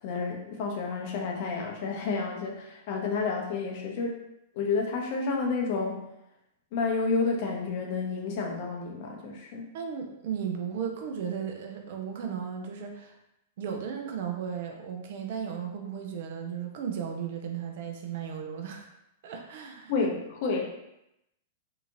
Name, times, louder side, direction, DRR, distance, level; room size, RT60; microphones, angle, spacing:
voice 1, 0.0-4.2 4.5-6.1 6.7-9.7 19.9-20.7, left 4 dB, 50° left, 0 dB, 0.6 m, -30 dB
voice 2, 9.7-13.2 13.6-18.9 19.2-19.9, right 7 dB, 55° right, 3 dB, 0.5 m, -35 dB
2.8 x 2.5 x 2.6 m, 0.84 s
figure-of-eight pair, 100°, 0 cm